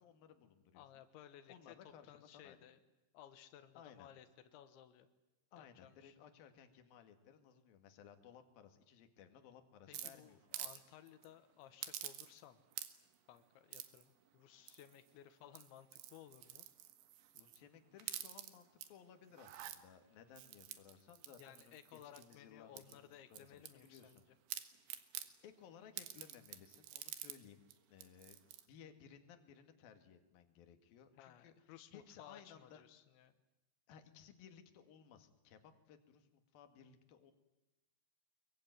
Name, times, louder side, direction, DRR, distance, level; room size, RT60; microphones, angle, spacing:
voice 1, 0.0-0.9 1.5-2.7 3.8-4.1 5.5-10.6 17.3-24.3 25.4-27.6 27.9-28.4 28.7-32.8 33.9-37.3, left 8 dB, 60° left, 7 dB, 3.5 m, -60 dB
voice 2, 0.8-2.8 3.1-4.3 4.5-5.1 5.6-6.2 9.9-12.6 13.3-16.7 21.4-24.2 31.2-33.3, left 11 dB, 90° left, 10 dB, 3.6 m, -59 dB
sound 1, 9.9-10.8 11.1-11.3 11.8-12.5 12.7-13.2 13.7-14.0 14.7-15.1 15.5-17.6 18.0-18.9 19.3-19.8 20.4-22.4 22.8-24.2 24.5-25.3 26.0-27.4 27.7-27.8 28.0-28.6, right 12 dB, 75° right, 3.7 m, -48 dB
25.5 x 23.0 x 9.4 m, 0.99 s
omnidirectional pair, 5.2 m